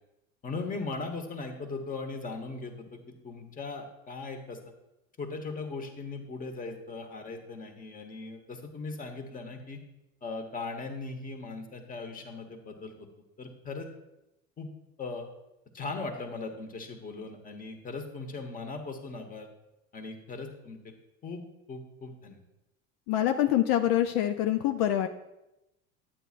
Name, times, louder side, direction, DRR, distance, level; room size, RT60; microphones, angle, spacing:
voice 1, 0.4-4.6 5.2-9.8 10.2-13.1 13.4-13.9 14.6-14.7 15.0-15.3 15.7-19.5 19.9-20.9 21.2-21.4 21.7-22.4, left 3 dB, 25° left, 4 dB, 1.2 m, -39 dB
voice 2, 23.1-25.1, left 12 dB, 70° left, 7 dB, 0.5 m, -25 dB
8.9 x 8.5 x 2.5 m, 0.92 s
supercardioid pair, 105°, 33 cm